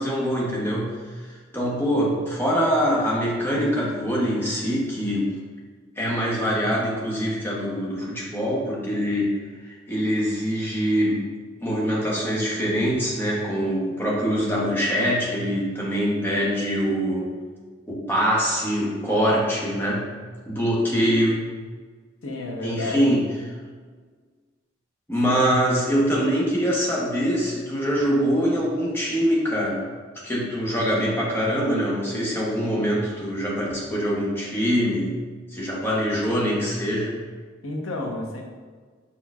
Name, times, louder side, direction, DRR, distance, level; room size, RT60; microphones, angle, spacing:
voice 1, 0.0-5.3 6.0-9.4 9.6-11.3 11.6-17.3 17.9-20.1 20.5-21.5 22.6-23.2 25.1-29.8 30.2-35.1 35.5-37.2, equal, 10° left, -5 dB, 0.9 m, -24 dB
voice 2, 22.2-23.3 37.6-38.4, left 2 dB, 85° left, 0 dB, 0.8 m, -31 dB
4.8 x 4.3 x 2.4 m, 1.5 s
head